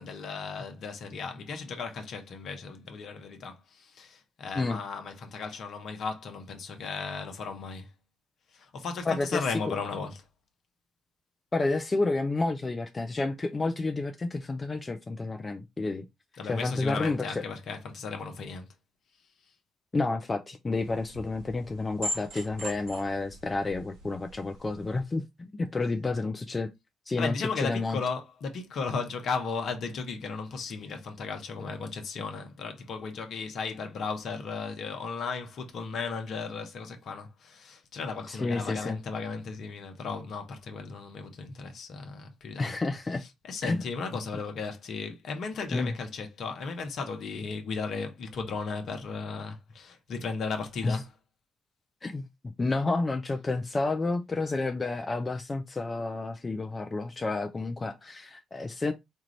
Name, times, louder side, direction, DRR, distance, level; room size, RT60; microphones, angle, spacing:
voice 1, 0.0-7.9 8.5-10.2 16.4-18.7 27.2-42.7 43.4-51.1, left 4 dB, 60° left, 0.9 m, -35 dB
voice 2, 9.1-9.4 11.5-16.0 16.4-17.4 19.9-26.7 27.1-28.0 38.3-39.0 42.6-43.2 43.6-43.8 45.7-45.9 50.8-51.0 52.0-52.3 52.6-58.9, left 3 dB, 30° left, 0.5 m, -30 dB
sound 1, 20.7-25.0, equal, 80° right, 1.6 m, -40 dB
4.5 x 2.4 x 3.1 m
hypercardioid pair, 45°, 0 cm